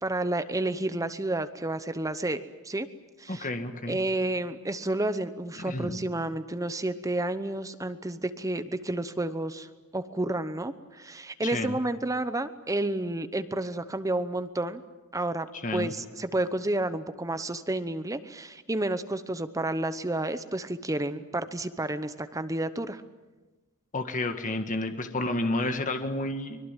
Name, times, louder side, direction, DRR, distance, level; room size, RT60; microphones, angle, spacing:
voice 1, 0.0-2.9 3.2-3.5 3.9-9.7 9.9-14.8 15.1-15.5 15.7-23.0, right 2 dB, 15° right, 11 dB, 0.9 m, -30 dB
voice 2, 3.3-4.0 5.7-6.1 11.4-11.8 15.6-15.9 23.9-26.6, left 2 dB, 35° left, 6 dB, 1.7 m, -30 dB
24.5 x 22.0 x 9.0 m, 1.2 s
head